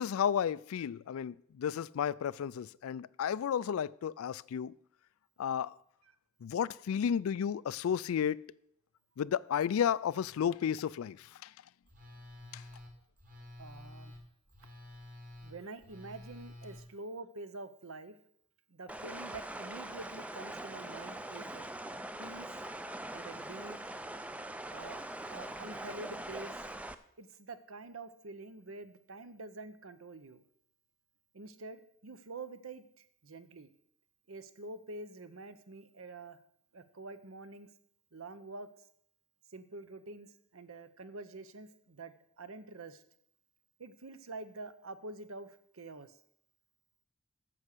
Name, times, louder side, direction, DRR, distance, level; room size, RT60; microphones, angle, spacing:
voice 1, 0.0-4.7 5.4-5.7 6.4-8.5 9.2-11.5 12.5-12.6, left 8 dB, 75° left, 0.3 m, -32 dB
Telephone, 11.9-16.8, left 1 dB, 40° right, 2.1 m, -50 dB
voice 2, 13.6-14.1 15.4-18.2 18.7-21.7 22.2-22.5 23.1-23.8 24.7-26.6 27.2-30.4 31.3-33.7 34.3-36.4 36.7-37.7 38.1-38.7 39.5-43.0 43.8-46.2, right 2 dB, 70° right, 0.8 m, -47 dB
sound 1, 18.9-26.9, right 1 dB, 5° right, 0.4 m, -42 dB
9.8 x 7.2 x 6.6 m
head